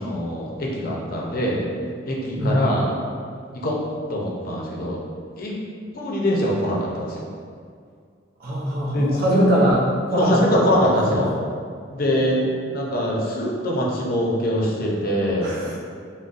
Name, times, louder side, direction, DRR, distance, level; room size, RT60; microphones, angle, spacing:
voice 1, 0.0-1.6 2.0-2.9 3.5-3.8 4.1-5.0 5.4-5.6 5.9-7.2 8.9-9.5 10.2-11.3 11.9-12.4 12.7-15.6, equal, 50° left, -3 dB, 0.5 m, -23 dB
voice 2, 2.4-2.7 8.4-9.8 10.1-10.6 11.1-11.2 15.4-15.8, equal, 55° right, -4 dB, 0.6 m, -21 dB
3.8 x 2.1 x 2.5 m, 2.2 s
head